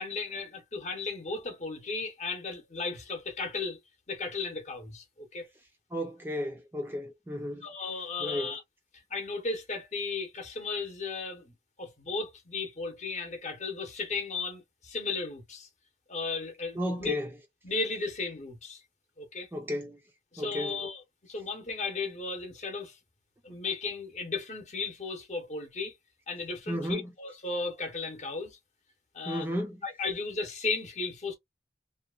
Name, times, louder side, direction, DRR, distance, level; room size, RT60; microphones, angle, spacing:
voice 1, 0.0-3.8 4.1-5.5 7.6-8.6 9.1-15.7 16.1-17.1 17.6-18.8 19.2-19.5 20.3-23.0 23.4-25.9 26.3-28.6 29.1-29.5 29.8-31.3, left 3 dB, 40° left, 0.8 m, -35 dB
voice 2, 5.9-7.7 8.2-8.6 16.8-17.3 19.5-20.0 20.4-20.8 26.7-27.1 29.3-29.8, left 1 dB, 10° right, 0.4 m, -33 dB
2.7 x 2.2 x 2.3 m
head